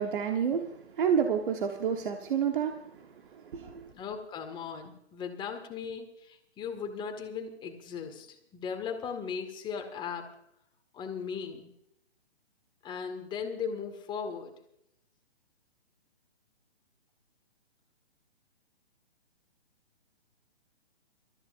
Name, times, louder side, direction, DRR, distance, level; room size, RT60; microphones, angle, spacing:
voice 1, 0.0-2.8 3.3-3.9, right 7 dB, 50° right, 4 dB, 1.4 m, -29 dB
voice 2, 3.9-10.3 10.9-11.7 12.8-14.5, left 6 dB, 15° left, 4 dB, 1.9 m, -37 dB
27.0 x 14.0 x 2.6 m, 0.76 s
figure-of-eight pair, 130°, 32 cm